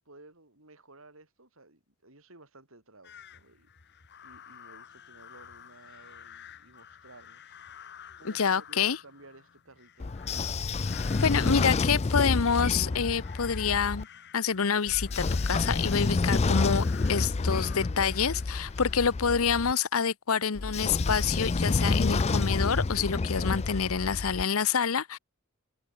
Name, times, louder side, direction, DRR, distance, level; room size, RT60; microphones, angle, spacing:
voice 1, 0.0-3.7 4.2-7.6 8.2-10.6, right 2 dB, 65° right, 6.2 m, -55 dB
sound 1, 3.0-19.3, left 9 dB, 55° left, 1.7 m, -51 dB
voice 2, 8.2-9.0 10.8-10.9 11.2-14.1 14.3-25.2, left 6 dB, 75° left, 0.8 m, -27 dB
Train / Sliding door, 10.0-14.0 14.9-19.7 20.6-24.4, left 3 dB, 30° left, 0.4 m, -29 dB
head